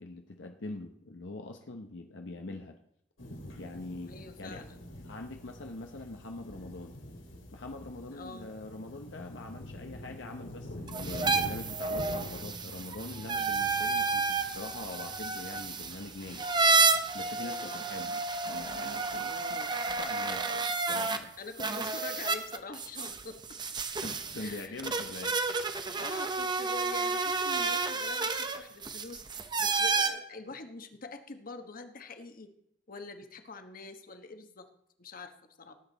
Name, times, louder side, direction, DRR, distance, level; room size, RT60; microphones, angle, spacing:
voice 1, 0.0-2.8 3.6-4.1 4.4-4.6 5.0-7.0 7.5-16.6 17.1-18.2 18.4-19.6 19.9-21.3 24.0-25.6, left 2 dB, 70° left, 4 dB, 0.8 m, -43 dB
sound 1, 3.2-17.4, left 1 dB, 90° left, 2.6 m, -46 dB
voice 2, 4.1-4.8 8.1-8.5 13.8-13.9 17.4-17.9 19.2-19.7 21.4-23.4 24.4-24.8 25.9-29.2 29.6-32.5 32.9-34.7 35.0-35.7, left 3 dB, 50° left, 7 dB, 1.2 m, -45 dB
sound 2, 10.9-21.2 21.6-30.1, right 4 dB, 25° right, 0.8 m, -31 dB
18.5 x 8.2 x 4.0 m, 0.75 s
head